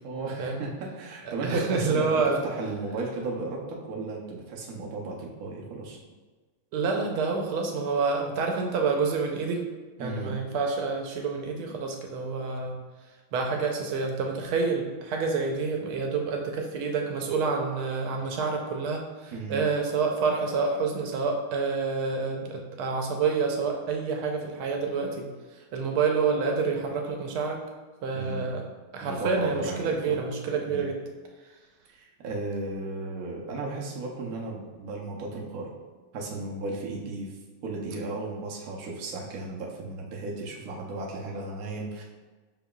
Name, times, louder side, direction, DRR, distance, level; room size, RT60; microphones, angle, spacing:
voice 1, 0.0-3.6 3.9-6.0 10.0-10.3 19.3-19.6 28.1-28.6 29.0-30.2 30.7-30.9 31.9-35.7 36.1-37.3 37.6-42.0, right 3 dB, 60° right, -2 dB, 1.0 m, -34 dB
voice 2, 1.3-2.4 6.7-9.6 10.0-12.8 13.3-25.3 25.7-27.6 28.0-28.6 28.9-31.0, right 4 dB, 90° right, 2 dB, 1.5 m, -28 dB
5.7 x 3.7 x 2.3 m, 1.3 s
omnidirectional pair, 2.3 m